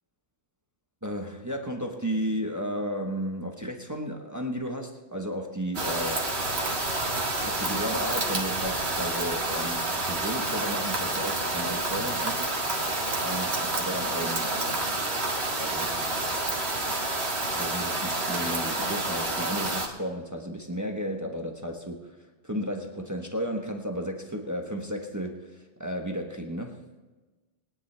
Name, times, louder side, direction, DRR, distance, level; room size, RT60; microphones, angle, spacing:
voice 1, 1.0-6.4 7.5-14.8 15.6-16.1 17.5-22.2 22.4-26.8, equal, 15° right, 2 dB, 1.1 m, -34 dB
sound 1, 5.7-19.9, right 2 dB, 65° right, 2.1 m, -29 dB
21.5 x 10.0 x 3.4 m, 1.2 s
omnidirectional pair, 1.2 m